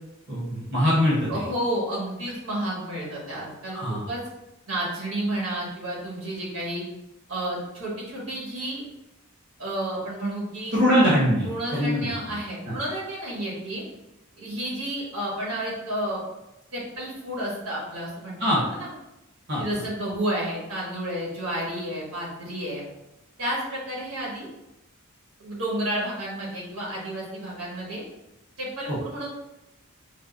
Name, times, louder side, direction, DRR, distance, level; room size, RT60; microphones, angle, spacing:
voice 1, 0.3-1.4 3.7-4.1 10.7-12.4 12.7-12.8 18.4-18.6 19.5-19.6 28.9-29.0, equal, 55° right, -7 dB, 0.9 m, -23 dB
voice 2, 1.3-4.2 4.7-6.8 7.3-8.8 9.6-10.7 11.4-13.8 14.4-16.2 16.7-18.9 19.6-22.8 23.4-24.5 25.4-28.0 28.6-29.3, right 1 dB, 85° right, -5 dB, 1.4 m, -31 dB
5.0 x 2.0 x 2.4 m, 0.92 s
head